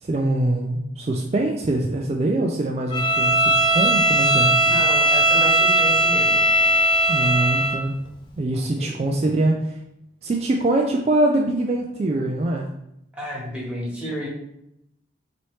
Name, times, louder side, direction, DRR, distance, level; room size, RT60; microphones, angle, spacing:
voice 1, 0.0-4.5 7.1-8.0 8.4-9.8 10.2-12.7, right 2 dB, 35° right, 1 dB, 0.3 m, -23 dB
Bowed string instrument, 2.9-7.8, right 1 dB, 25° left, 0.5 m, -18 dB
voice 2, 4.6-6.4 8.5-8.9 13.1-14.3, left 1 dB, 5° right, -6 dB, 1.3 m, -31 dB
4.2 x 3.1 x 3.1 m, 0.80 s
head